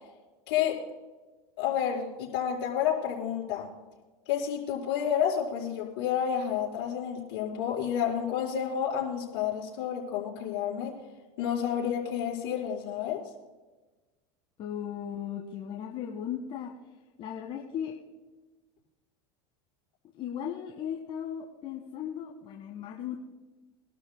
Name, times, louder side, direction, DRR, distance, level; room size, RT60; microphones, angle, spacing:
voice 1, 0.5-0.8 1.6-3.7 4.3-10.9 11.4-13.2, left 9 dB, 70° left, -3 dB, 4.7 m, -30 dB
voice 2, 14.6-16.7 17.2-17.9 20.1-23.2, left 9 dB, 45° left, 0 dB, 1.6 m, -36 dB
24.0 x 12.0 x 2.2 m, 1.2 s
supercardioid pair, 100°, 12 cm